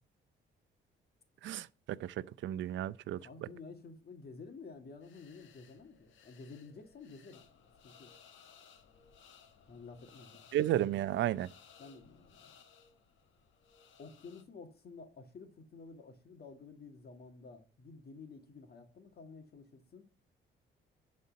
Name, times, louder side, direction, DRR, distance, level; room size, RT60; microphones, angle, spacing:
voice 1, 1.4-3.3 10.5-11.5, right 12 dB, 70° right, 0.5 m, -33 dB
voice 2, 3.2-7.5 7.8-8.2 9.7-10.4 11.8-12.5 14.0-20.1, left 4 dB, 50° left, 1.9 m, -51 dB
sound 1, 5.0-14.4, left 7 dB, 75° left, 1.5 m, -61 dB
11.5 x 4.3 x 5.2 m
cardioid pair, 90°, 20 cm